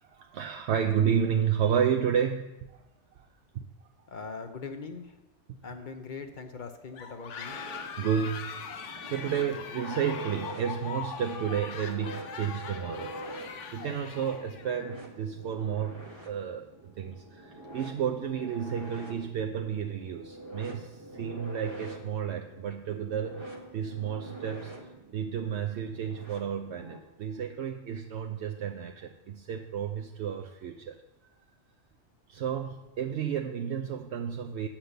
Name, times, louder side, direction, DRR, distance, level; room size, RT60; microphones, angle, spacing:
voice 1, 0.1-2.5 3.5-3.6 8.0-13.2 13.7-16.7 17.0-24.7 25.1-31.0 32.3-34.7, right 8 dB, 70° right, 3 dB, 0.8 m, -31 dB
voice 2, 4.1-5.2 5.6-7.6, left 4 dB, 50° left, 6 dB, 0.8 m, -41 dB
sound 1, 6.9-14.8, left 6 dB, 90° left, 1.1 m, -41 dB
sound 2, 7.4-27.0, right 1 dB, 25° right, 1.1 m, -46 dB
8.1 x 5.8 x 6.7 m, 0.98 s
omnidirectional pair, 1.2 m